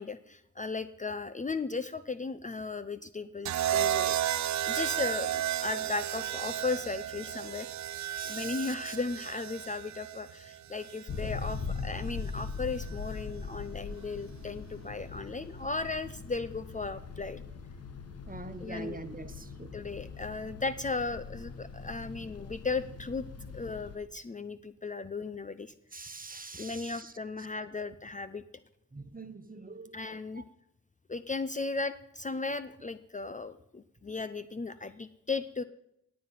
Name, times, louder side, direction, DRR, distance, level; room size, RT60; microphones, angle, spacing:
voice 1, 0.0-4.2 4.6-7.9 8.2-17.4 18.6-19.0 19.7-23.2 23.5-25.7 26.6-28.4 29.9-30.4 31.1-35.6, left 3 dB, 25° left, 13 dB, 0.6 m, -36 dB
sound 1, 3.4-11.6 12.8-13.2, right 11 dB, 65° right, 0.5 m, -33 dB
voice 2, 8.2-9.0 18.3-19.7 25.9-27.1 28.9-29.9 30.3-30.4, right 3 dB, 25° right, 10 dB, 1.4 m, -44 dB
sound 2, 11.1-24.0, left 5 dB, 50° left, 1.3 m, -41 dB
19.0 x 7.7 x 5.6 m, 0.81 s
cardioid pair, 50°, 31 cm